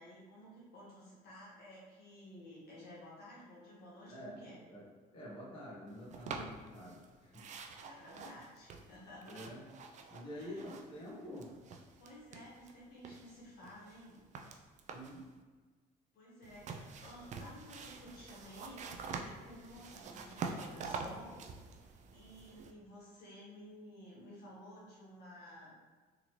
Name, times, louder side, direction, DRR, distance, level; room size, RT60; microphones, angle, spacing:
voice 1, 0.0-4.6 7.8-9.5 10.3-10.7 12.0-14.2 16.1-21.4 21.8-25.8, left 1 dB, 70° left, -6 dB, 1.4 m, -53 dB
voice 2, 5.1-7.4 9.2-9.6 10.1-11.5 14.9-15.2 20.1-20.5, equal, 30° left, -6 dB, 1.1 m, -48 dB
sound 1, 6.1-7.1 7.3-11.1 11.3-12.7 13.0-15.2 16.4-22.7, right 5 dB, 45° right, 0.4 m, -46 dB
3.9 x 2.9 x 3.0 m, 1.4 s
cardioid pair, 110°, 17 cm